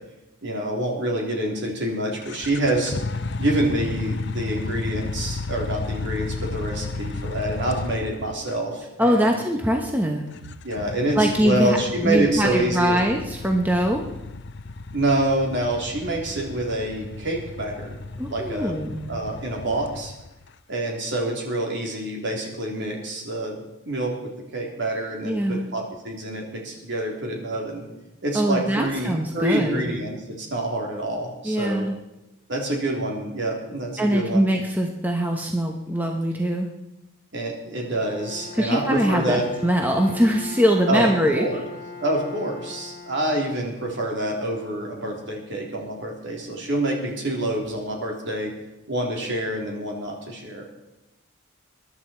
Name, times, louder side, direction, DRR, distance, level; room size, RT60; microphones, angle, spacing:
voice 1, 0.4-2.9 3.4-9.4 10.6-13.0 14.9-18.0 18.3-18.8 19.1-20.1 20.7-27.8 28.2-31.9 32.5-34.5 37.3-39.4 40.9-41.7 42.0-48.5 48.9-50.6, right 1 dB, 55° right, 0 dB, 3.6 m, -27 dB
sound 1, 2.2-8.6 10.4-20.5, left 3 dB, 55° left, 0.7 m, -33 dB
voice 2, 9.0-10.3 11.2-11.8 12.0-14.0 18.2-19.2 25.2-25.7 28.3-30.0 31.4-32.0 34.0-36.7 38.5-41.5, equal, 10° right, 2 dB, 1.0 m, -22 dB
Bowed string instrument, 37.8-44.0, left 4 dB, 20° left, 5.6 m, -40 dB
22.5 x 11.0 x 4.5 m, 0.95 s
head